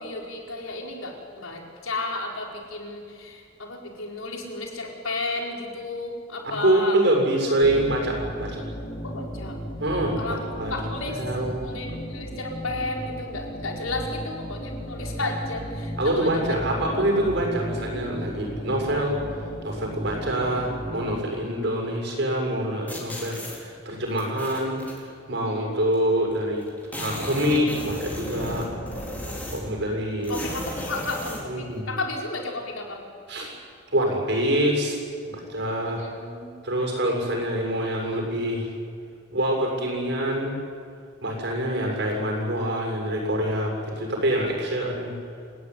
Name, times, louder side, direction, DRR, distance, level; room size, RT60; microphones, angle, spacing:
voice 1, 0.0-7.0 7.4-7.8 9.0-9.6 10.2-10.4 10.7-11.2 11.6-16.6 17.0-17.1 25.4-25.7 30.3-33.0 35.9-36.5, left 2 dB, 85° left, 1 dB, 4.7 m, -33 dB
voice 2, 6.4-8.6 9.8-10.7 11.1-11.6 16.0-26.6 27.0-28.7 29.5-30.4 31.4-31.9 33.3-33.5 33.9-36.0 36.6-38.7 39.3-40.6 41.2-45.2, right 1 dB, 55° right, 1 dB, 7.0 m, -25 dB
sound 1, 7.6-21.2, equal, 40° left, 3.0 m, -35 dB
sound 2, 22.9-23.6 24.2-25.0 25.9-26.0 26.3-26.4 26.6-29.8 30.2-31.5, left 1 dB, 10° left, 4.5 m, -35 dB
sound 3, 28.3-30.6, left 1 dB, 55° left, 3.5 m, -39 dB
29.0 x 17.5 x 9.7 m, 2.3 s
head